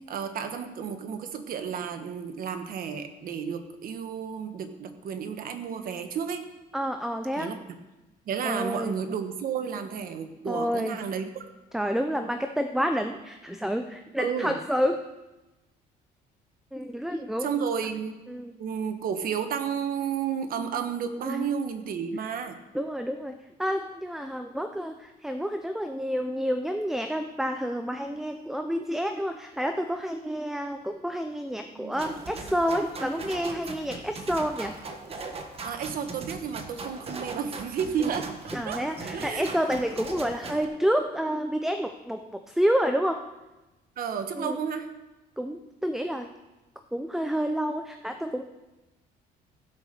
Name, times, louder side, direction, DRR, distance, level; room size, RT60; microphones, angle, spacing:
voice 1, 0.1-6.5 7.4-7.6 8.3-11.4 14.2-14.6 17.4-18.1 18.6-22.6 31.8-32.2 35.6-38.3 38.6-38.8 39.1-39.5 44.0-44.9, right 7 dB, 60° right, 7 dB, 1.3 m, -32 dB
voice 2, 6.7-7.6 8.4-9.0 10.5-11.0 11.7-15.1 16.7-17.6 18.3-18.5 21.2-21.5 22.7-34.8 38.0-38.1 38.5-43.3 44.4-44.6 45.4-46.3 46.9-48.4, equal, ahead, 7 dB, 0.6 m, -29 dB
sound 1, 32.0-40.6, right 3 dB, 35° right, 1.5 m, -39 dB
15.5 x 6.0 x 6.6 m, 1.1 s
cardioid pair, 110°, 17 cm